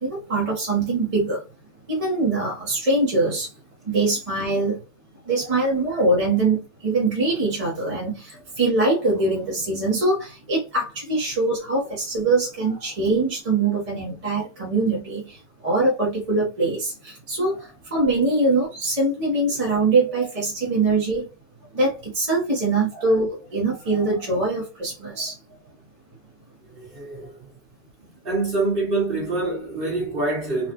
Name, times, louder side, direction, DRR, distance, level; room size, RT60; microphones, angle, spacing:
voice 1, 0.0-1.4 1.9-3.5 3.8-4.8 5.3-21.3 21.7-25.4, right 2 dB, 30° right, 1.1 m, -23 dB
voice 2, 5.5-6.0 8.3-8.4 22.9-23.1 23.9-24.5 25.1-25.2 26.7-27.5 28.0-30.7, right 3 dB, 50° right, 2.0 m, -27 dB
4.2 x 2.4 x 2.9 m
omnidirectional pair, 1.2 m